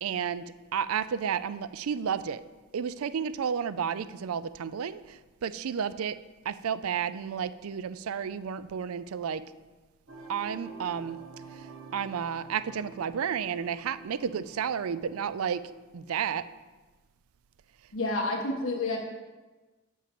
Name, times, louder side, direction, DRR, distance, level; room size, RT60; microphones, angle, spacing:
voice 1, 0.0-2.4 2.7-6.2 6.4-9.4 10.3-11.2 11.5-16.4, right 7 dB, 85° right, 14 dB, 0.4 m, -32 dB
sound 1, 10.1-15.9, right 4 dB, 65° right, 1.3 m, -48 dB
voice 2, 17.9-19.0, left 2 dB, 70° left, 0 dB, 1.5 m, -29 dB
7.3 x 4.4 x 6.9 m, 1.2 s
head